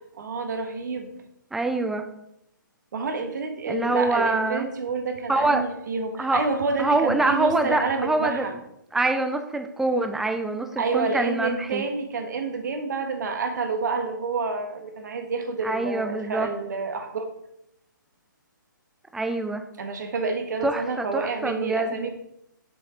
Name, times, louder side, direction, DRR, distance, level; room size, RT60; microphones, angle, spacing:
voice 1, 0.2-1.2 2.9-8.5 10.8-17.2 19.8-22.1, right 4 dB, 60° right, 6 dB, 1.4 m, -28 dB
voice 2, 1.5-2.0 3.7-4.7 5.3-5.6 6.2-6.4 6.8-8.5 8.9-11.8 15.6-16.5 19.1-19.6 20.6-22.0, right 2 dB, 5° right, 7 dB, 0.4 m, -25 dB
6.7 x 6.5 x 4.3 m, 0.81 s
hypercardioid pair, 150°, 11 cm